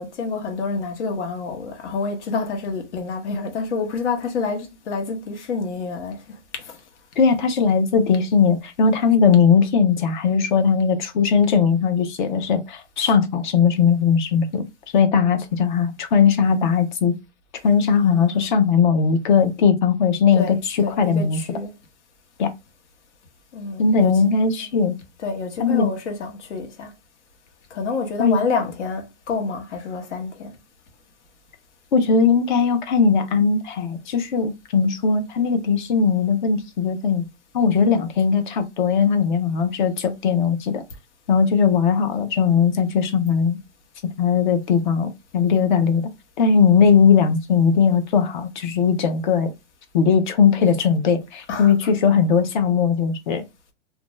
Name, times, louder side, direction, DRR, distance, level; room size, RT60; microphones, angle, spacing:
voice 1, 0.0-6.8 17.9-18.5 20.3-21.7 23.5-24.7 25.2-26.9 27.7-30.6 51.5-51.9, left 4 dB, 75° left, 1.1 m, -28 dB
voice 2, 7.2-14.6 14.9-17.1 17.6-21.4 22.4-22.5 23.8-25.0 25.6-25.9 28.2-28.4 31.9-37.3 37.5-40.8 41.3-43.6 44.2-46.0 46.4-49.5 49.9-53.4, left 6 dB, 45° left, 0.5 m, -19 dB
2.5 x 2.2 x 3.0 m
supercardioid pair, 170°, 35 cm